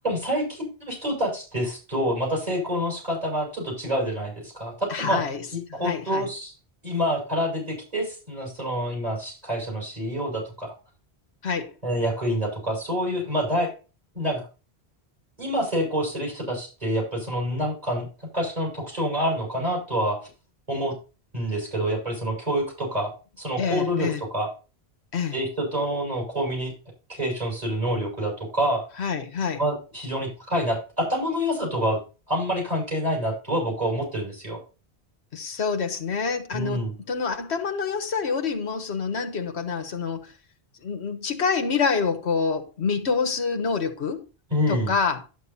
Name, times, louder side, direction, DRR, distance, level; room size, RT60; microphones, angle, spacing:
voice 1, 0.0-5.2 5.5-6.5 6.8-10.7 11.8-13.7 14.1-14.4 15.4-18.1 18.3-20.2 20.7-20.9 21.3-23.1 23.4-24.5 25.3-26.7 27.1-28.8 29.6-32.0 32.3-34.6 36.5-36.9 44.5-44.9, equal, 35° right, 6.6 m, -27 dB
voice 2, 4.9-6.3 11.4-11.7 23.6-24.2 25.1-25.4 29.0-29.6 35.3-40.3 40.8-44.2 44.7-45.2, left 5 dB, 85° left, 1.5 m, -27 dB
11.0 x 9.1 x 2.7 m
omnidirectional pair, 1.1 m